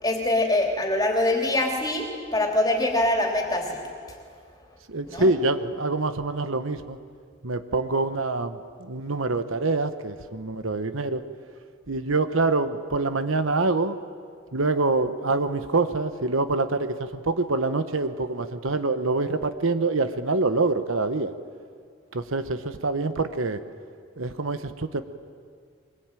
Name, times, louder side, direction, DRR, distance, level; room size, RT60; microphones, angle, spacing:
voice 1, 0.0-3.8 5.1-5.3, left 1 dB, 20° left, 1 dB, 3.4 m, -24 dB
voice 2, 4.9-7.0 7.4-11.2 11.9-14.0 14.5-21.3 22.1-23.6 24.2-25.0, right 3 dB, 80° right, 10 dB, 1.1 m, -25 dB
23.0 x 21.0 x 9.1 m, 2.1 s
head